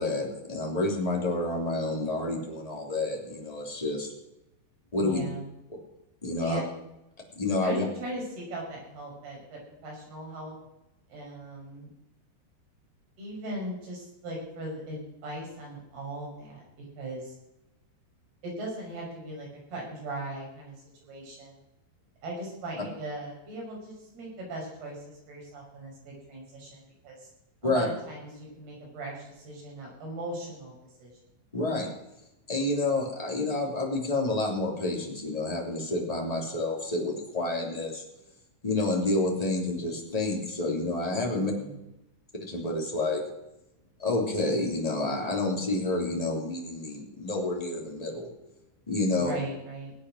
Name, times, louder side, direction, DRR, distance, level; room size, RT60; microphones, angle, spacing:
voice 1, 0.0-4.1 4.9-5.3 6.2-6.6 7.4-7.8 27.6-27.9 31.5-31.9 32.5-38.0 38.6-41.5 42.5-43.2 44.0-48.3 48.9-49.3, left 2 dB, 10° left, -1 dB, 2.2 m, -29 dB
voice 2, 5.0-5.4 6.3-6.7 7.6-10.5 11.1-11.9 13.2-16.6 17.0-17.3 18.4-21.6 22.2-27.3 27.6-30.7 31.0-31.1 41.3-41.8 49.1-49.9, right 1 dB, 60° right, -2 dB, 8.2 m, -39 dB
19.0 x 8.8 x 6.4 m, 0.89 s
omnidirectional pair, 5.1 m